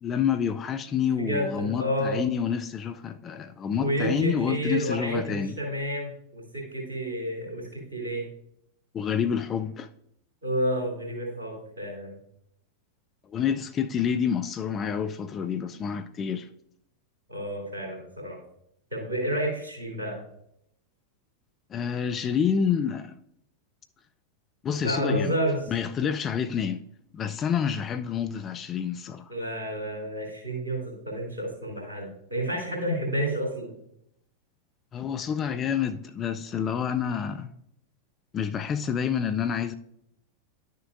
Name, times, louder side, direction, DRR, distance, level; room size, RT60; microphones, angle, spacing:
voice 1, 0.0-5.6 8.9-9.9 13.3-16.5 21.7-23.2 24.6-25.4 25.7-26.8 27.1-29.3 34.9-37.5 38.3-39.7, left 7 dB, 25° left, 0.4 m, -28 dB
voice 2, 1.2-2.2 3.8-8.2 10.4-12.1 17.3-18.4 18.9-20.2 24.8-25.6 29.3-33.8, right 1 dB, 75° right, 2.9 m, -30 dB
10.5 x 6.5 x 2.5 m
figure-of-eight pair, 90°, 0 cm